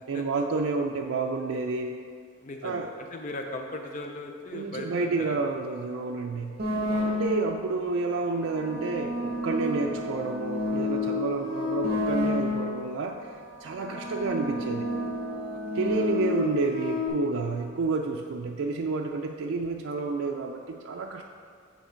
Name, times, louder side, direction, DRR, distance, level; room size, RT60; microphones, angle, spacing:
voice 1, 0.1-2.0 2.6-2.9 4.5-6.6 7.0-13.3 13.6-14.9 15.7-21.2, right 3 dB, 75° right, 1 dB, 0.4 m, -30 dB
voice 2, 2.4-5.6 6.9-7.2 13.8-14.2 15.5-16.2, left 2 dB, 35° left, 4 dB, 0.4 m, -39 dB
sound 1, 6.6-7.7 8.4-12.9 13.7-17.1, left 2 dB, 50° right, 1.3 m, -30 dB
8.1 x 4.4 x 4.4 m, 2.1 s
head